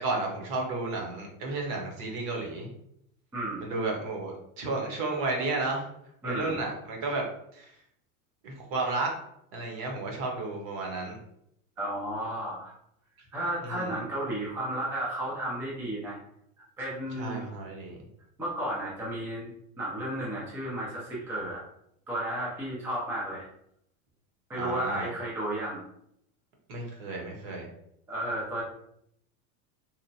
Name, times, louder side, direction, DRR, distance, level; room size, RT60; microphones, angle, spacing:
voice 1, 0.0-2.7 3.6-5.8 6.2-7.3 7.5-7.7 8.4-9.1 9.5-11.2 13.6-14.0 17.2-18.0 24.6-25.1 26.7-27.7, right 3 dB, 50° right, 0 dB, 1.0 m, -32 dB
voice 2, 3.3-3.7 6.2-6.6 11.8-12.7 13.3-16.2 16.8-17.5 18.4-19.5 19.8-21.7 22.1-23.4 24.5-25.8 28.1-28.6, right 1 dB, 5° right, -6 dB, 0.3 m, -33 dB
3.0 x 2.1 x 2.7 m, 0.74 s
supercardioid pair, 130°, 43 cm